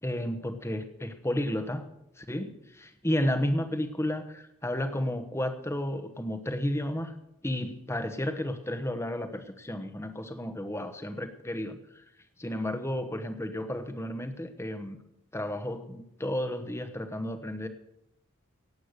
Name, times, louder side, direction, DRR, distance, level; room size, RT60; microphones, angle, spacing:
voice 1, 0.0-1.9 2.2-7.1 7.4-11.8 12.4-15.0 15.3-17.7, left 1 dB, 10° left, 9 dB, 1.2 m, -32 dB
18.0 x 8.5 x 6.7 m, 0.82 s
head